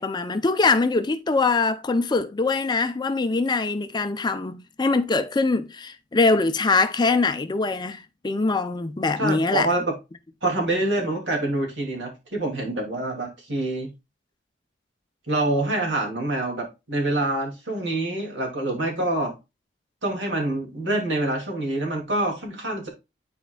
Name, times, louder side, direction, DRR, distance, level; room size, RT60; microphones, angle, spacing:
voice 1, 0.0-9.7, left 3 dB, 25° left, 0.4 m, -23 dB
voice 2, 9.2-9.9 10.4-13.9 15.3-19.3 20.0-22.9, right 2 dB, 70° right, 2.4 m, -26 dB
10.5 x 4.3 x 2.3 m
head